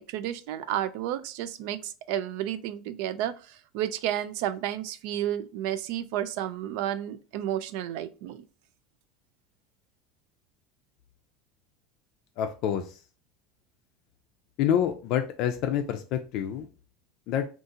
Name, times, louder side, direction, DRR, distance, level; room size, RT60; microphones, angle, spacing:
voice 1, 0.0-8.4, right 11 dB, 65° right, 0.3 m, -32 dB
voice 2, 12.4-13.0 14.6-16.7 17.3-17.5, left 9 dB, 50° left, 0.4 m, -27 dB
2.7 x 2.4 x 3.7 m
supercardioid pair, 155°, 0 cm